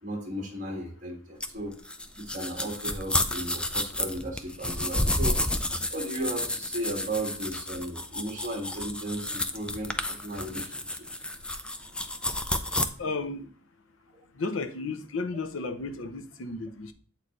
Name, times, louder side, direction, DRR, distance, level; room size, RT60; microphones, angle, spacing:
voice 1, 0.0-1.8 2.2-5.4 5.7-11.1, right 1 dB, 40° right, 1.8 m, -35 dB
sound 1, 1.4-12.9, left 1 dB, 5° left, 0.4 m, -31 dB
voice 2, 13.0-13.5 14.3-16.9, left 3 dB, 90° left, 0.7 m, -33 dB
8.1 x 4.0 x 3.2 m
head